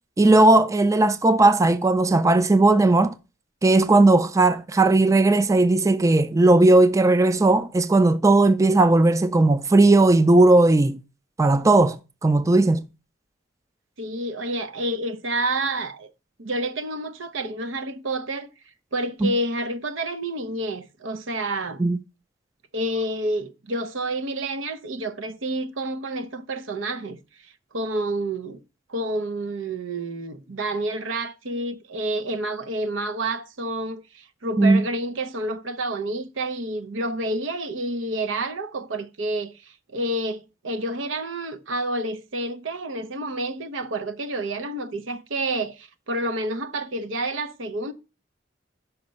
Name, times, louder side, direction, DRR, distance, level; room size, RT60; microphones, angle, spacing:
voice 1, 0.2-3.1 3.6-11.0 11.4-12.0 12.2-12.9 19.2-19.3 21.8-22.0 34.6-34.8, right 2 dB, 15° right, 0.3 m, -17 dB
voice 2, 14.0-16.1 16.4-18.5 18.9-21.8 22.7-27.2 27.7-28.6 28.9-47.9, right 1 dB, 85° right, 0.8 m, -29 dB
5.8 x 5.2 x 5.2 m
head